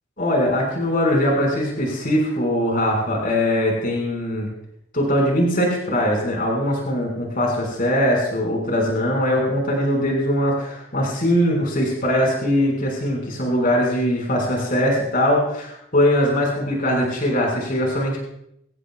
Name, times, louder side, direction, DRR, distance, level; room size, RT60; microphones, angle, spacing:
voice 1, 0.2-4.5 4.9-18.2, equal, 45° left, -1 dB, 6.0 m, -21 dB
25.0 x 17.0 x 2.5 m, 0.76 s
head